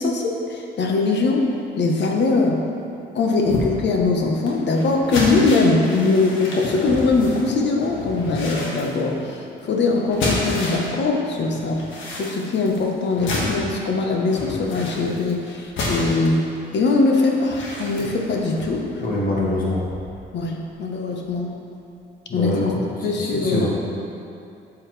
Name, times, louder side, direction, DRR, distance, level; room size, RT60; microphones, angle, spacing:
voice 1, 0.0-1.5 1.8-2.6 3.1-11.8 12.1-16.4 16.7-19.0 20.3-21.6 22.3-22.7 23.0-23.7, left 3 dB, 60° left, 1 dB, 1.0 m, -21 dB
sound 1, 3.4-11.0 11.3-20.3 20.7-20.8 21.2-21.3, left 2 dB, 75° left, 1.5 m, -31 dB
voice 2, 19.0-19.8 22.3-22.6 23.0-23.7, left 2 dB, 45° left, -5 dB, 1.8 m, -24 dB
7.5 x 7.3 x 3.2 m, 2.6 s
cardioid pair, 90°, 20 cm